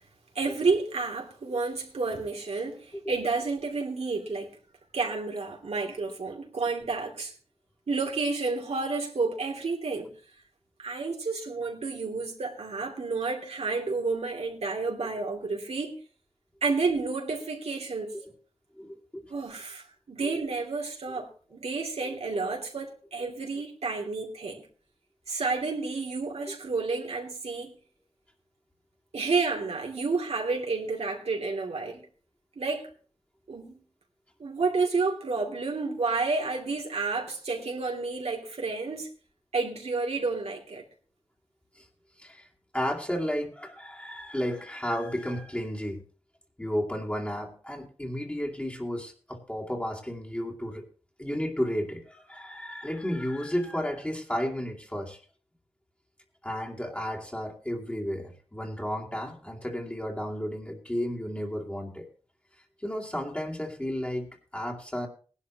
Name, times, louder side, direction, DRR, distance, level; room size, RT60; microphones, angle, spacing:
voice 1, 0.3-4.5 4.9-7.3 7.9-10.1 10.8-16.0 16.6-18.1 19.3-24.7 25.3-27.7 29.1-32.1 32.6-32.9 33.5-33.8 34.4-39.1 39.5-40.8, right 4 dB, 80° right, 3.1 m, -30 dB
voice 2, 18.8-19.2 20.2-20.4 22.3-22.4 41.8-41.9 42.2-42.5 42.7-46.0 46.6-50.9 51.2-55.2 56.4-62.1 62.8-65.1, equal, 10° left, 2.4 m, -33 dB
19.0 x 11.5 x 3.1 m
wide cardioid pair, 105°, 11 cm